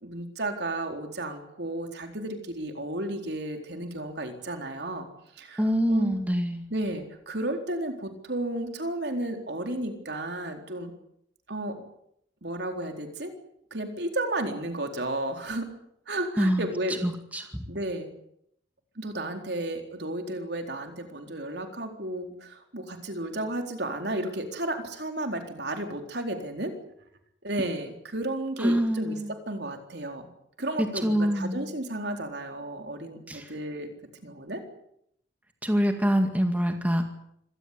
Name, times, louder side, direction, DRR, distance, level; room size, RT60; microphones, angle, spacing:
voice 1, 0.0-5.1 5.4-6.2 6.7-10.9 11.5-11.8 12.4-13.3 13.7-15.7 16.1-17.1 17.7-18.1 19.0-26.7 27.4-30.3 30.6-33.9 34.2-34.6, right 1 dB, 60° right, 5 dB, 4.0 m, -33 dB
voice 2, 5.6-6.6 16.4-16.6 17.0-17.4 28.6-29.3 31.0-31.7 33.3-33.4 35.6-37.0, equal, 10° right, 5 dB, 2.1 m, -25 dB
25.5 x 18.0 x 8.4 m, 0.73 s
head